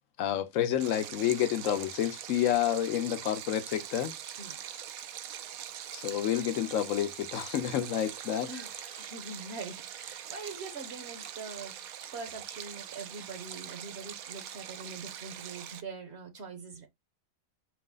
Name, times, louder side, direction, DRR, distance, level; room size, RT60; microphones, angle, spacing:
voice 1, 0.2-4.1 5.9-8.5, left 11 dB, 70° left, 0.9 m, -29 dB
Stream, 0.8-15.8, right 10 dB, 85° right, 1.1 m, -43 dB
voice 2, 4.4-4.8 8.5-16.9, right 4 dB, 55° right, 1.0 m, -43 dB
4.7 x 2.1 x 3.7 m
omnidirectional pair, 1.5 m